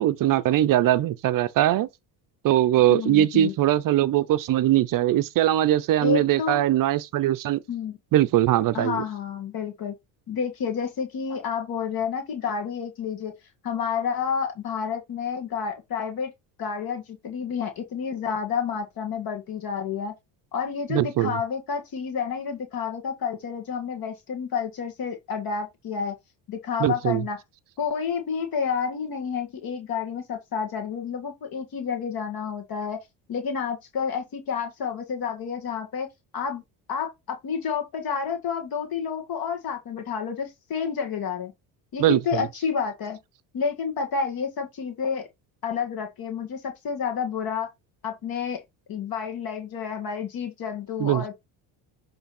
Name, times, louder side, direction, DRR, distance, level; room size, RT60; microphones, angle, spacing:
voice 1, 0.0-1.9 2.4-7.6 8.1-9.0 20.9-21.4 26.8-27.2 42.0-42.5 51.0-51.3, right 13 dB, 45° right, 0.6 m, -21 dB
voice 2, 2.9-3.5 6.0-6.6 7.7-8.0 8.7-9.9 10.3-13.3 13.6-16.3 16.6-20.1 20.5-26.1 26.5-27.4 27.8-33.0 33.3-36.1 36.3-36.6 36.9-41.5 41.9-43.2 43.5-45.2 45.6-47.7 48.0-48.6 48.9-51.3, left 6 dB, 50° left, 1.8 m, -30 dB
7.9 x 3.4 x 4.2 m
cardioid pair, 120°, 47 cm